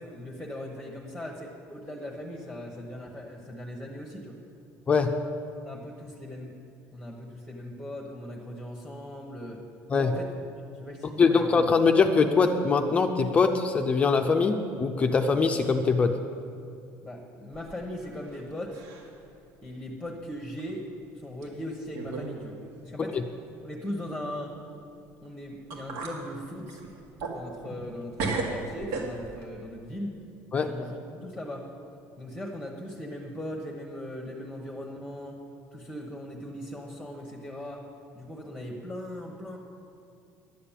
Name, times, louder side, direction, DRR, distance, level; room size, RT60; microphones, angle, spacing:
voice 1, 0.0-4.4 5.6-6.5 6.9-9.6 9.9-10.3 10.7-11.5 11.9-12.0 17.0-18.8 19.6-20.9 21.1-23.2 23.6-24.6 25.2-26.8 27.3-30.1 30.6-31.7 32.2-35.4 35.7-37.9 38.1-39.6, left 1 dB, 5° left, 0 dB, 1.1 m, -39 dB
voice 2, 4.9-5.2 9.9-10.2 11.2-16.2 23.0-23.2 30.5-30.8, left 4 dB, 20° left, 6 dB, 0.5 m, -23 dB
sound 1, 17.5-18.4 18.7-19.2 19.6-19.7 20.6-20.7 21.4-21.5 21.9-22.3 22.6-22.7 25.3-25.4 25.7-26.2 26.7-27.9 28.2-29.5, right 3 dB, 75° right, 2.0 m, -35 dB
11.0 x 8.6 x 7.3 m, 2.5 s
cardioid pair, 160°, 6 cm